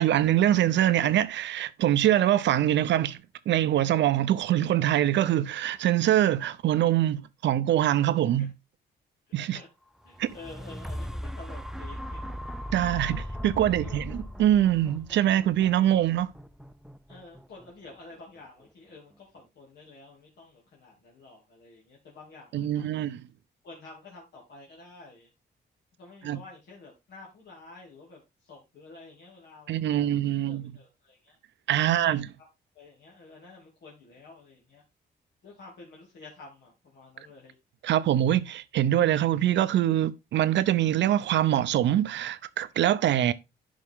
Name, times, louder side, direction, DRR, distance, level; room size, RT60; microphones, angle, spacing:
voice 1, 0.0-3.2 3.5-8.5 9.3-9.6 10.2-10.3 12.7-16.3 22.5-23.2 26.2-26.4 29.7-30.7 31.7-32.3 37.8-43.3, right 12 dB, 80° right, 0.7 m, -24 dB
voice 2, 9.3-9.7 10.0-12.2 13.7-14.0 15.8-16.0 17.1-23.0 23.6-25.3 26.0-30.2 30.4-31.4 31.9-32.0 32.4-32.5 32.7-34.8 35.4-37.5, left 3 dB, 70° left, 2.7 m, -50 dB
sound 1, 10.0-18.1 18.7-18.8, equal, ahead, 0.5 m, -38 dB
11.5 x 5.3 x 3.6 m
cardioid pair, 135°, 18 cm